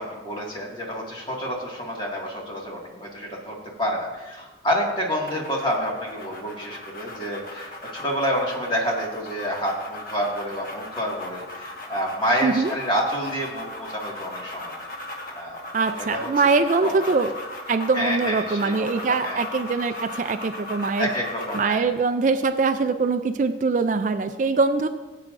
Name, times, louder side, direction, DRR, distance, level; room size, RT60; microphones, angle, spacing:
voice 1, 0.0-14.7 15.3-15.6 16.0-16.3 16.8-17.0 17.9-19.4 21.0-21.9, equal, 25° left, -2 dB, 1.8 m, -28 dB
sound 1, 5.3-21.8, left 2 dB, 45° left, 1.4 m, -38 dB
voice 2, 15.7-17.4 17.7-21.1 21.5-24.9, right 4 dB, 40° right, 9 dB, 0.4 m, -23 dB
17.5 x 8.4 x 2.5 m, 1.2 s
head